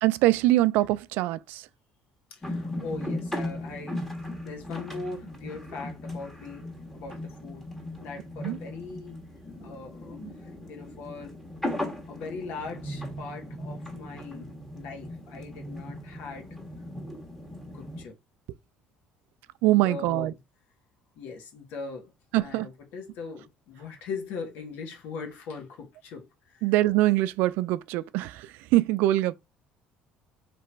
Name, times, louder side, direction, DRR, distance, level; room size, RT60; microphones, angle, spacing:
voice 1, 0.0-1.7 8.4-8.6 19.6-20.3 22.3-22.7 26.6-29.3, right 16 dB, 80° right, 0.4 m, -23 dB
voice 2, 2.3-4.1 4.4-7.7 8.0-9.2 9.6-11.4 12.1-14.5 14.7-16.5 17.7-18.1 19.7-20.4 21.1-22.1 22.4-26.7, left 4 dB, 75° left, 1.5 m, -40 dB
sound 1, 2.4-18.1, left 1 dB, 10° left, 1.5 m, -37 dB
3.4 x 2.9 x 4.5 m
cardioid pair, 115°, 3 cm